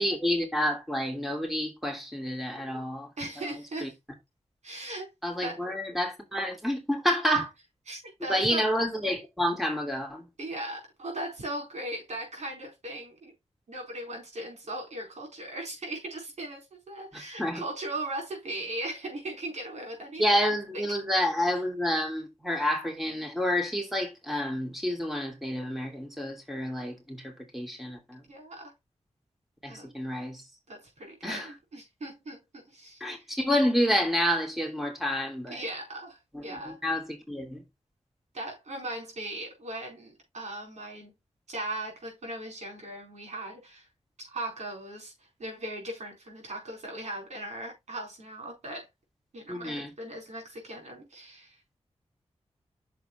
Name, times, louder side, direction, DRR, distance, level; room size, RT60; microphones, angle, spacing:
voice 1, 0.0-3.1 3.4-3.9 5.2-7.5 8.3-10.3 17.1-17.6 20.2-28.2 29.6-30.4 31.2-31.5 33.0-35.6 36.3-37.6 49.5-49.9, equal, ahead, 2.8 m, -29 dB
voice 2, 2.5-2.9 3.2-4.0 4.6-5.1 5.4-5.6 7.3-7.4 7.9-8.7 10.4-13.3 13.7-20.4 20.7-20.9 28.3-28.7 29.7-29.9 30.7-33.3 35.5-36.8 38.3-41.1 41.5-43.9 44.2-48.9 49.3-51.8, right 1 dB, 90° right, 4.4 m, -38 dB
6.6 x 4.7 x 4.4 m
wide cardioid pair, 70°, 11 cm